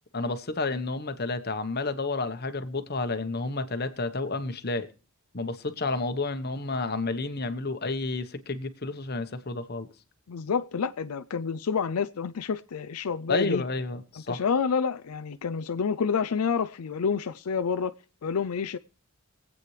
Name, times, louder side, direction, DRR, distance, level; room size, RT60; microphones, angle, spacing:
voice 1, 0.1-4.9 5.3-9.9 13.3-14.4, left 3 dB, 45° left, 1.1 m, -30 dB
voice 2, 10.3-13.6 14.3-17.9 18.2-18.8, left 6 dB, 85° left, 0.5 m, -28 dB
23.0 x 8.5 x 3.3 m
head